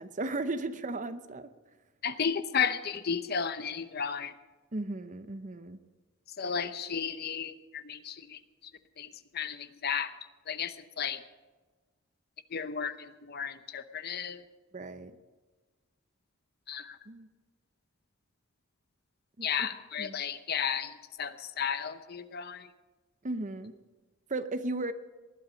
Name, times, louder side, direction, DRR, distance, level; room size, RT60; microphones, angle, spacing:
voice 1, 0.0-1.5 4.7-5.8 14.7-15.1 17.1-17.3 19.4-19.7 20.0-20.2 23.2-23.7 24.3-24.9, right 2 dB, 40° right, 12 dB, 0.8 m, -35 dB
voice 2, 2.0-4.3 6.4-8.4 9.0-9.1 9.3-10.1 10.5-11.2 12.5-14.4 16.7-17.0 19.4-22.7, left 7 dB, 50° left, 11 dB, 0.8 m, -33 dB
19.5 x 12.0 x 5.2 m, 1.3 s
head